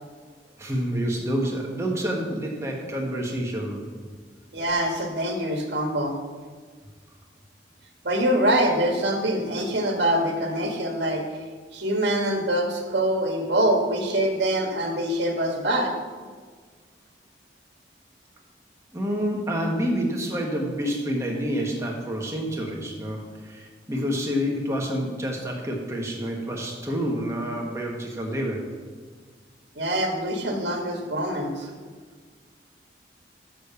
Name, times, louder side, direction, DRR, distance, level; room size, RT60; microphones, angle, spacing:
voice 1, 0.6-3.9 18.9-28.7, equal, 15° right, -1 dB, 1.4 m, -28 dB
voice 2, 4.5-6.2 8.0-11.2 11.7-15.9 29.7-31.7, right 1 dB, 75° right, 2 dB, 1.5 m, -24 dB
6.8 x 6.5 x 6.8 m, 1.5 s
head